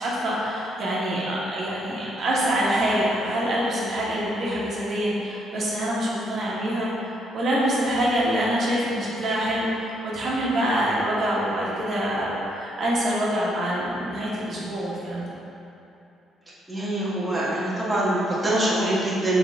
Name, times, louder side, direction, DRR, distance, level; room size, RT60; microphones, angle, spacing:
voice 1, 0.0-15.2, equal, 50° right, -6 dB, 1.3 m, -25 dB
voice 2, 16.7-19.4, right 1 dB, 5° right, -9 dB, 1.2 m, -24 dB
6.5 x 4.7 x 3.6 m, 2.8 s
cardioid pair, 140°, 0 cm